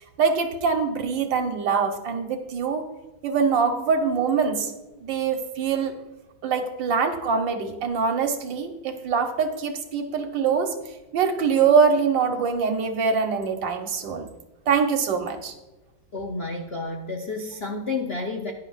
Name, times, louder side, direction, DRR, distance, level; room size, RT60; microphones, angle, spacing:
voice 1, 0.2-2.8 3.2-4.7 5.0-5.9 6.4-10.7 11.1-14.3 14.7-15.5, right 5 dB, 65° right, 5 dB, 1.6 m, -23 dB
voice 2, 16.1-18.5, left 3 dB, 75° left, 3 dB, 0.5 m, -30 dB
14.5 x 10.5 x 2.4 m, 1.0 s
omnidirectional pair, 2.2 m